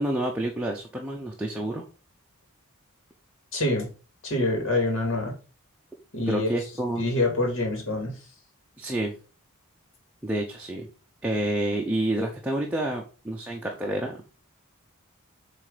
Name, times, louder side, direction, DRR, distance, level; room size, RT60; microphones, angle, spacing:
voice 1, 0.0-1.8 6.3-7.0 8.8-9.2 10.2-10.9 11.2-14.2, right 1 dB, 5° right, -1 dB, 0.8 m, -28 dB
voice 2, 3.5-3.9 4.2-5.4 6.1-6.5 7.0-8.1, left 2 dB, 60° left, 2 dB, 2.4 m, -25 dB
7.8 x 3.4 x 5.0 m, 0.36 s
head